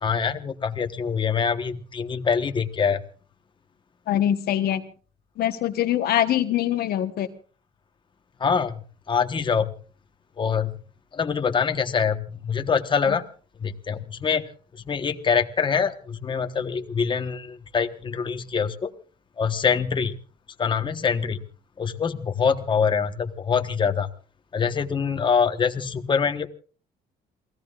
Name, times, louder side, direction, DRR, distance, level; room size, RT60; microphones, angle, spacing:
voice 1, 0.0-3.0 8.4-9.7 10.4-10.7 11.1-13.2 13.6-14.4 14.9-18.9 19.4-20.2 20.6-21.4 21.8-24.1 24.5-26.5, left 6 dB, 30° left, 7 dB, 1.3 m, -24 dB
voice 2, 4.1-4.8 5.4-7.3 13.0-13.2, left 11 dB, 65° left, 9 dB, 1.2 m, -23 dB
28.5 x 17.5 x 2.5 m, 0.40 s
cardioid pair, 110°, 17 cm